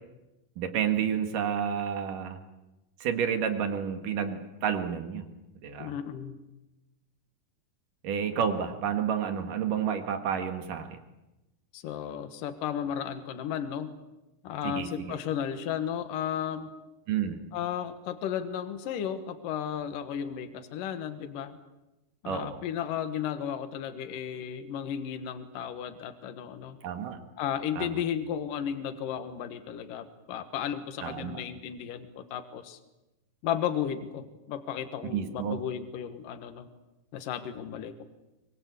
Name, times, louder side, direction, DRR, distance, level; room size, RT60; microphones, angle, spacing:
voice 1, 0.6-2.4 3.0-5.2 5.6-5.9 8.0-11.0 14.6-15.2 17.1-17.4 22.3-22.6 26.8-27.2 27.8-28.0 31.0-31.4 35.1-35.6, right 8 dB, 65° right, 7 dB, 3.3 m, -30 dB
voice 2, 5.8-6.4 11.7-13.9 14.4-16.7 17.5-21.6 22.2-26.8 27.4-32.8 33.4-36.7 37.1-38.0, left 9 dB, 70° left, 9 dB, 3.0 m, -34 dB
24.0 x 23.0 x 8.4 m, 1.0 s
omnidirectional pair, 4.1 m